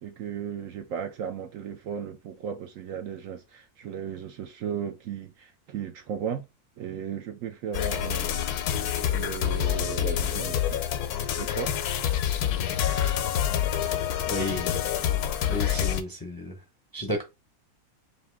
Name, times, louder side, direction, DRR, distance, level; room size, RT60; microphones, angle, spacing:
voice 1, 0.0-6.4 6.8-8.4 9.1-10.8 11.4-11.7, right 8 dB, 65° right, 0.9 m, -35 dB
sound 1, 7.7-16.0, left 10 dB, 80° left, 1.1 m, -27 dB
voice 2, 14.3-14.8 15.5-16.6 16.9-17.2, left 1 dB, 20° left, 0.6 m, -32 dB
4.2 x 2.8 x 3.4 m
omnidirectional pair, 1.6 m